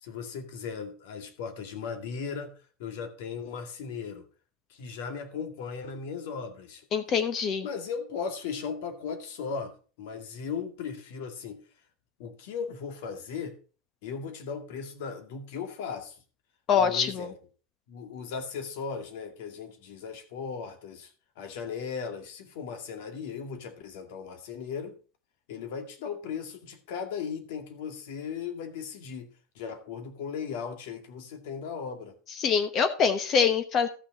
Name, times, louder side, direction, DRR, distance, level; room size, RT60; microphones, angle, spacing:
voice 1, 0.0-2.5 2.8-4.3 4.7-6.9 7.6-11.6 12.2-13.6 14.0-16.2 16.7-17.3 17.9-21.1 21.4-25.0 25.5-32.1, left 6 dB, 70° left, 6 dB, 2.2 m, -37 dB
voice 2, 6.9-7.7 16.7-17.3 32.4-33.9, left 6 dB, 30° left, 10 dB, 1.0 m, -24 dB
13.5 x 6.3 x 4.1 m, 0.37 s
supercardioid pair, 155°, 0 cm